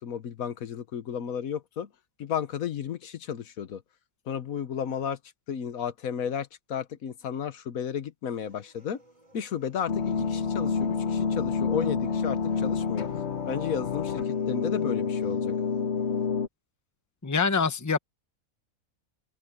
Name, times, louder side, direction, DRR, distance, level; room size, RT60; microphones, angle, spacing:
voice 1, 0.0-1.9 2.2-3.8 4.3-5.2 5.5-9.0 9.3-15.5, left 8 dB, 80° left, 1.4 m, -33 dB
sound 1, 8.3-16.3, right 1 dB, 25° right, 6.7 m, -58 dB
sound 2, 9.9-16.5, left 6 dB, 55° left, 1.4 m, -28 dB
voice 2, 17.2-18.0, left 5 dB, 15° left, 0.9 m, -25 dB
omnidirectional pair, 1.4 m